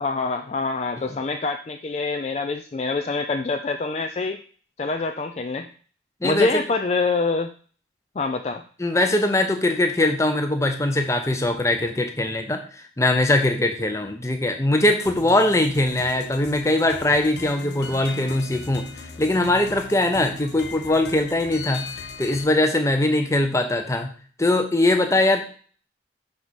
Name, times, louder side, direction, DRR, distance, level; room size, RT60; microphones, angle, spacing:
voice 1, 0.0-4.4 4.8-5.7 6.2-7.5 8.2-8.6, left 3 dB, 35° left, 5 dB, 0.3 m, -25 dB
voice 2, 8.8-12.6 13.0-18.9 19.2-21.9 22.2-24.1 24.4-25.4, left 1 dB, 15° left, 5 dB, 0.7 m, -21 dB
sound 1, 15.0-22.4, left 3 dB, 65° left, 0.8 m, -38 dB
6.0 x 4.9 x 4.1 m, 0.43 s
head